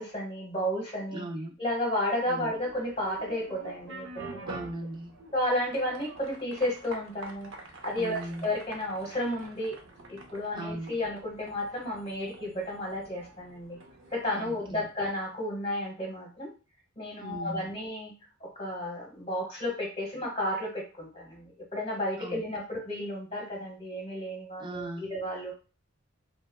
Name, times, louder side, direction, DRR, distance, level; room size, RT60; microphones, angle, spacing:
voice 1, 0.0-1.2 1.6-4.1 4.3-4.5 5.3-7.5 7.8-9.8 10.1-13.8 14.1-16.5 17.0-18.1 18.4-25.5, left 1 dB, 30° left, -1 dB, 1.1 m, -32 dB
voice 2, 1.1-1.5 2.3-2.6 4.5-5.1 7.9-8.5 10.5-10.9 14.3-14.9 17.2-17.7 22.2-22.4 24.6-25.1, right 1 dB, 25° right, 4 dB, 0.4 m, -38 dB
sound 1, 2.5-15.3, right 2 dB, 70° right, 0.6 m, -47 dB
3.2 x 2.2 x 2.3 m, 0.33 s
head